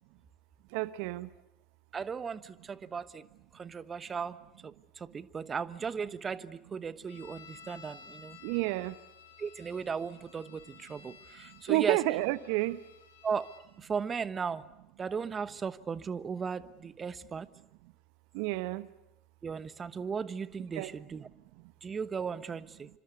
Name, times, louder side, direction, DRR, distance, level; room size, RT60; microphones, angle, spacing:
voice 1, 0.7-1.3 8.4-8.9 11.7-12.8 18.3-18.9 20.7-20.9, right 18 dB, 60° right, 16 dB, 1.0 m, -30 dB
voice 2, 1.9-3.3 3.5-4.4 4.6-8.4 9.4-12.0 13.2-13.5 13.8-14.6 15.0-17.5 19.4-21.3 21.8-22.9, right 6 dB, 25° right, 15 dB, 1.1 m, -36 dB
sound 1, 7.1-13.7, left 7 dB, 75° left, 4.9 m, -55 dB
27.0 x 25.5 x 8.3 m, 0.91 s
hypercardioid pair, 75°, 0 cm